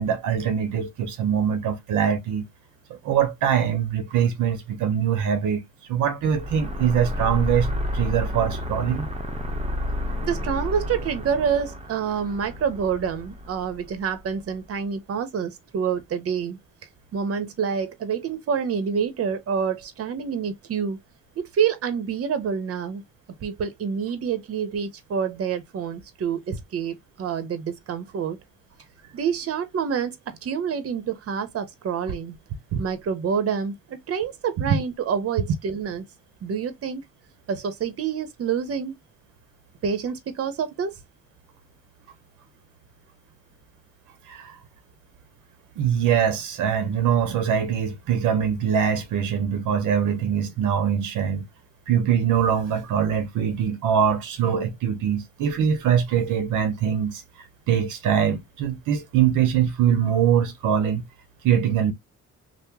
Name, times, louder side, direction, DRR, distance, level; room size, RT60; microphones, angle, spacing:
voice 1, 0.0-2.5 2.9-5.6 5.9-7.7 7.9-9.1 32.7-32.8 34.7-34.8 44.3-44.5 45.8-51.5 51.9-57.2 57.7-61.0 61.4-61.9, right 8 dB, 85° right, 0.8 m, -23 dB
sound 1, 6.2-14.6, left 1 dB, 20° right, 0.8 m, -31 dB
voice 2, 10.2-16.6 17.1-21.0 21.4-23.0 23.4-28.4 29.1-32.4 32.8-36.0 36.4-37.0 37.5-39.0 39.8-41.0, right 7 dB, 50° right, 0.8 m, -27 dB
2.9 x 2.1 x 3.4 m
cardioid pair, 90°, 30 cm